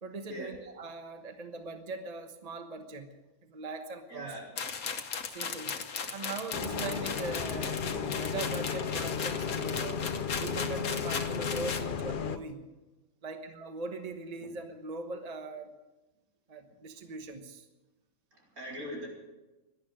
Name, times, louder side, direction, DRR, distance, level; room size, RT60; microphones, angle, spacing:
voice 1, 0.0-3.1 3.4-4.4 5.3-5.8 6.1-10.0 10.4-12.6 13.2-15.7 16.5-17.7 18.9-19.0, right 3 dB, 30° right, 6 dB, 1.2 m, -41 dB
voice 2, 4.1-4.5 18.3-19.1, equal, 80° right, -2 dB, 4.7 m, -41 dB
sound 1, 4.6-11.9, left 6 dB, 80° left, 1.5 m, -37 dB
Bus, 6.5-12.4, left 6 dB, 50° left, 0.7 m, -34 dB
18.0 x 12.0 x 6.3 m, 1.1 s
omnidirectional pair, 1.5 m